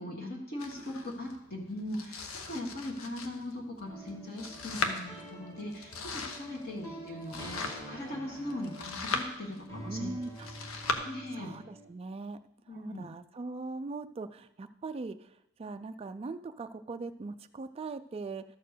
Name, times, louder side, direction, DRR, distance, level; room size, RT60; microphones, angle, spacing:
voice 1, 0.0-10.1 10.8-11.5 12.7-13.1, left 1 dB, 45° left, -1 dB, 1.7 m, -40 dB
Domestic sounds home sounds, 0.6-10.9, left 4 dB, 85° left, 0.9 m, -39 dB
sound 1, 3.8-11.9, right 1 dB, 15° left, 1.7 m, -47 dB
voice 2, 9.8-10.7 11.3-12.4 12.7-18.4, right 3 dB, 30° right, 9 dB, 0.3 m, -40 dB
12.5 x 4.4 x 6.6 m, 0.81 s
head